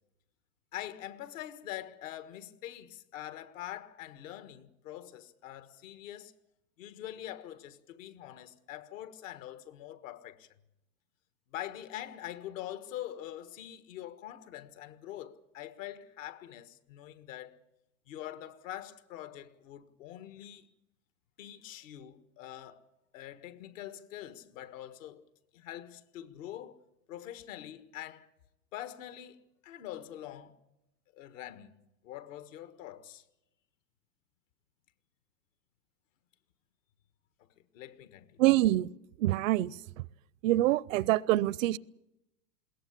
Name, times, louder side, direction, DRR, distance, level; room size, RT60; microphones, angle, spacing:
voice 1, 0.7-6.3 6.8-10.5 11.5-17.6 18.1-20.7 21.4-22.8 23.1-25.2 25.5-26.8 27.1-28.3 28.7-30.6 31.1-31.7 32.0-33.2 37.7-38.4, left 12 dB, 60° left, 1.6 m, -44 dB
voice 2, 38.4-38.9 39.2-40.0 40.4-41.8, right 16 dB, 65° right, 0.7 m, -26 dB
21.5 x 17.5 x 8.3 m
supercardioid pair, 130°, 43 cm